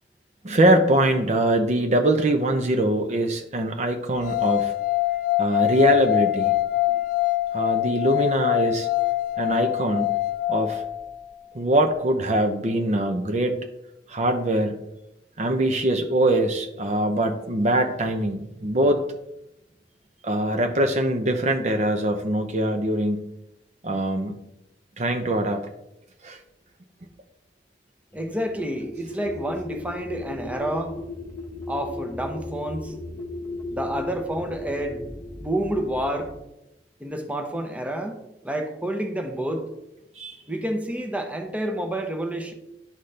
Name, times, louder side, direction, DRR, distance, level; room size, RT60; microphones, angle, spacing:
voice 1, 0.4-4.7 5.4-6.5 7.5-8.9 9.4-10.1 10.5-10.8 11.5-13.7 14.1-14.8 15.4-19.1 20.2-23.3 23.8-24.3 25.0-25.6 26.2-26.4 40.2-40.4, right 1 dB, 40° right, 6 dB, 0.6 m, -22 dB
sound 1, 4.2-11.3, left 16 dB, 50° left, 0.5 m, -24 dB
sound 2, 28.1-36.4, left 2 dB, 10° left, 1.0 m, -36 dB
voice 2, 28.1-30.9 31.7-32.9 33.7-35.1 35.4-36.3 37.0-38.2 38.4-39.6 40.5-42.5, right 1 dB, 10° right, 4 dB, 0.8 m, -29 dB
11.5 x 4.1 x 3.3 m, 0.87 s
head